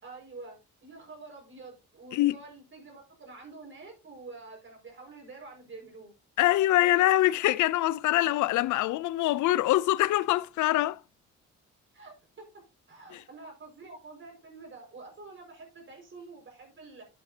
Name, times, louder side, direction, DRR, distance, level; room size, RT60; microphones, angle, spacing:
voice 1, 0.0-6.1 8.1-8.2 11.9-12.4 12.9-17.0, right 3 dB, 40° right, 5.4 m, -47 dB
voice 2, 6.4-11.0 13.1-13.2, left 15 dB, 75° left, 0.5 m, -24 dB
11.0 x 8.4 x 2.8 m
cardioid pair, 90°, 30 cm